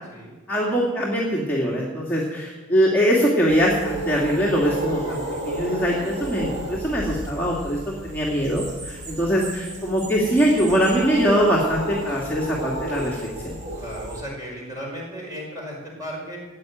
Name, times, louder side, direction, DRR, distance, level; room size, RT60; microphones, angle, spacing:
voice 1, 0.5-13.2 13.4-13.5, equal, 10° left, -5 dB, 2.1 m, -22 dB
sound 1, 3.5-14.2, right 1 dB, 35° right, 2.6 m, -32 dB
voice 2, 13.8-16.4, equal, 15° right, -3 dB, 4.9 m, -35 dB
15.0 x 9.0 x 9.2 m, 1.2 s
head